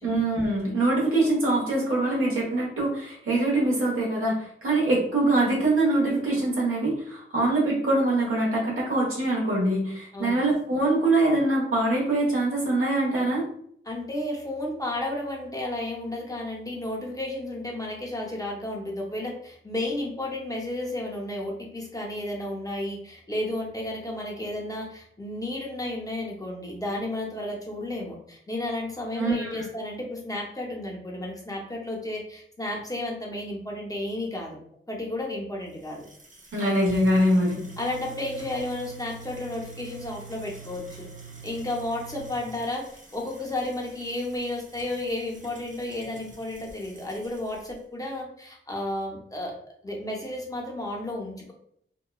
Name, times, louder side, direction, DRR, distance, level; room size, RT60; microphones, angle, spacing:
voice 1, 0.0-13.5 29.2-29.6 36.5-37.6, right 2 dB, 85° right, -4 dB, 1.1 m, -24 dB
voice 2, 13.9-34.6 34.9-36.1 37.8-41.1 41.4-42.8 43.1-51.5, left 1 dB, 15° left, -2 dB, 0.6 m, -32 dB
sound 1, 35.7-47.7, right 4 dB, 35° right, 0.6 m, -46 dB
2.9 x 2.2 x 2.3 m, 0.65 s
wide cardioid pair, 110°, 21 cm